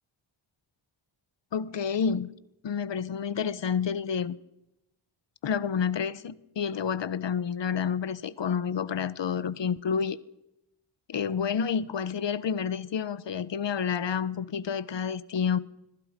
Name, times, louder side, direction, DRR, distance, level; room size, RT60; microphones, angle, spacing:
voice 1, 1.5-2.3 2.6-4.4 5.4-10.2 11.1-15.6, left 7 dB, 65° left, 1.2 m, -29 dB
25.5 x 22.5 x 5.3 m
cardioid pair, 80°, 47 cm